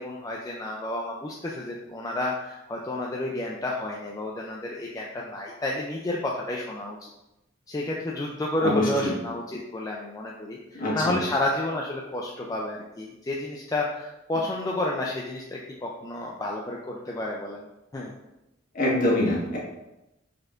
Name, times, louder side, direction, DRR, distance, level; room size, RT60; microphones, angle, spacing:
voice 1, 0.0-7.0 7.7-17.7 17.9-18.1, left 1 dB, 20° left, -2 dB, 0.4 m, -30 dB
voice 2, 8.6-9.1 10.8-11.1 18.7-19.6, left 1 dB, 45° left, -5 dB, 1.4 m, -24 dB
5.0 x 4.3 x 2.5 m, 0.93 s
head